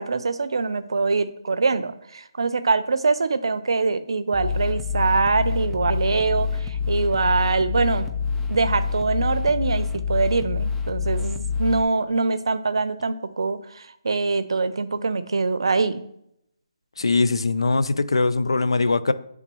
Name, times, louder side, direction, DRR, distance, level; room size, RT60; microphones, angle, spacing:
voice 1, 0.0-8.1 8.5-16.0, right 4 dB, 70° right, 13 dB, 0.5 m, -23 dB
sound 1, 4.3-11.8, left 5 dB, 5° left, 0.3 m, -26 dB
voice 2, 17.0-19.1, left 3 dB, 85° left, 13 dB, 0.5 m, -21 dB
9.1 x 3.7 x 3.0 m, 0.76 s
hypercardioid pair, 160°, 3 cm